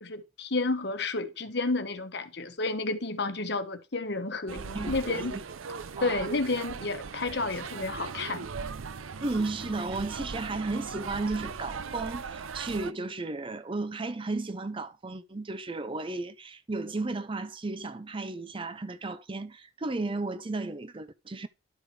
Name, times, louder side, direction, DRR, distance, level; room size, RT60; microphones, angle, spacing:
voice 1, 0.0-5.4 6.0-8.5, left 3 dB, 55° left, 1.2 m, -31 dB
sound 1, 4.5-12.9, right 5 dB, 85° right, 0.6 m, -39 dB
voice 2, 4.7-5.4 6.0-6.3 9.2-21.5, right 3 dB, 25° right, 0.5 m, -34 dB
11.5 x 4.8 x 4.8 m
head